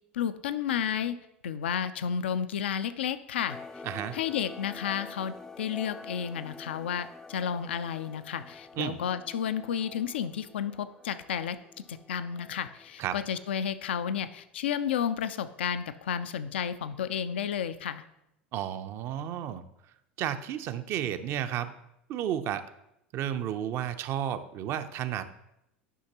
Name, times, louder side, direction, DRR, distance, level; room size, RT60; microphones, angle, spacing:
voice 1, 0.1-1.2 1.4-3.6 4.1-11.6 11.9-18.0, left 8 dB, 75° left, 12 dB, 0.4 m, -32 dB
sound 1, 3.5-13.0, left 3 dB, 10° left, 0.4 m, -47 dB
voice 2, 3.8-4.2 8.7-9.0 13.0-13.2 18.5-19.6 20.2-21.7 22.1-22.7 23.1-25.3, right 10 dB, 45° right, 10 dB, 0.6 m, -32 dB
11.0 x 5.7 x 2.9 m, 0.82 s
figure-of-eight pair, 80°, 6 cm